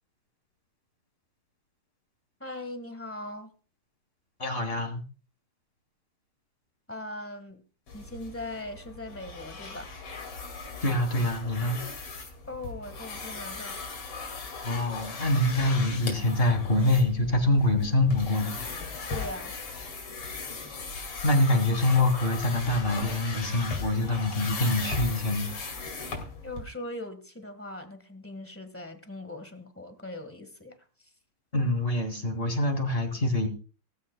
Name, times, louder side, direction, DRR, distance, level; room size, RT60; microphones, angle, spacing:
voice 1, 2.4-3.5 6.9-7.6 7.9-9.9 12.5-13.8 19.1-19.5 26.4-31.1, left 1 dB, 5° left, 8 dB, 1.3 m, -40 dB
voice 2, 4.4-5.0 10.8-11.8 14.6-18.6 20.5-20.6 21.0-25.5 31.5-33.5, left 1 dB, 25° left, 5 dB, 2.6 m, -25 dB
sound 1, 7.9-26.6, left 4 dB, 80° left, 3.4 m, -38 dB
17.0 x 15.0 x 2.3 m, 0.36 s
omnidirectional pair, 2.4 m